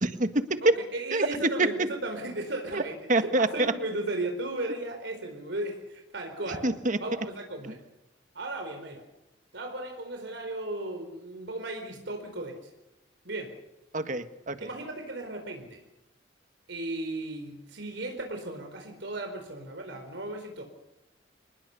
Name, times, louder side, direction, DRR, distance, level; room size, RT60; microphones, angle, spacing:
voice 1, 0.0-0.4 1.1-1.7 2.7-2.8 3.1-3.7 6.6-7.0 7.6-7.7 13.9-14.7, right 2 dB, 40° right, 9 dB, 1.6 m, -26 dB
voice 2, 0.6-6.6 7.0-7.8 8.3-9.1 9.5-12.6 13.2-13.5 14.6-15.8 16.7-20.6, right 2 dB, 65° right, 4 dB, 4.5 m, -36 dB
27.5 x 20.5 x 6.9 m, 0.94 s
head